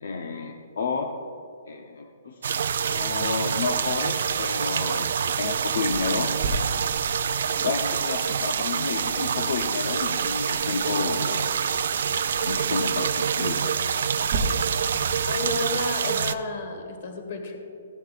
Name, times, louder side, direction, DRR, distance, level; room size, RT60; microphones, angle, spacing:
voice 1, 0.0-1.2 1.7-2.6 2.8-6.4 7.6-11.6 12.4-13.7, left 4 dB, 60° left, 4 dB, 0.7 m, -30 dB
sound 1, 2.4-16.3, right 7 dB, 50° right, 0.4 m, -26 dB
sound 2, 5.9-14.4, right 4 dB, 25° right, 0.8 m, -39 dB
voice 2, 15.3-17.6, left 3 dB, 35° left, 4 dB, 1.4 m, -31 dB
16.0 x 10.5 x 2.4 m, 2.8 s
hypercardioid pair, 180°, 0 cm